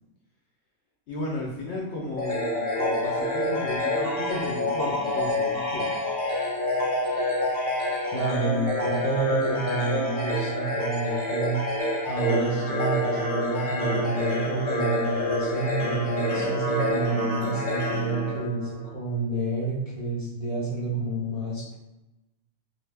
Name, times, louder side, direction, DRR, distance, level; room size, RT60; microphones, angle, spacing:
voice 1, 1.1-5.9, left 1 dB, 65° left, -2 dB, 0.7 m, -34 dB
sound 1, 2.2-18.9, left 1 dB, 35° left, 0.7 m, -27 dB
voice 2, 8.1-11.6 12.1-21.8, right 3 dB, 70° right, -8 dB, 0.3 m, -29 dB
2.5 x 2.3 x 3.2 m, 1.0 s
omnidirectional pair, 1.5 m